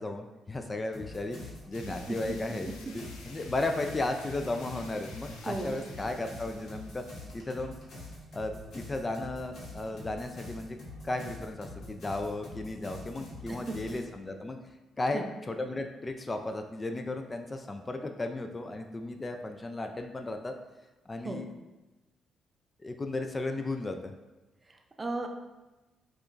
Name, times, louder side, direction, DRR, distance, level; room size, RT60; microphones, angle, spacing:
voice 1, 0.0-7.0 7.3-7.7 8.3-10.8 11.0-14.6 15.0-20.6 21.1-21.5 22.8-24.1, left 2 dB, 30° left, 5 dB, 0.3 m, -35 dB
sound 1, 0.9-14.0, left 1 dB, 65° left, 1.1 m, -45 dB
sound 2, 1.7-7.2, left 3 dB, 90° left, 0.5 m, -52 dB
voice 2, 5.5-5.8 13.5-13.8 15.1-15.2 21.2-21.4 24.7-25.3, right 2 dB, 30° right, 4 dB, 0.5 m, -35 dB
4.9 x 2.4 x 2.5 m, 1.1 s
supercardioid pair, 60°, 0 cm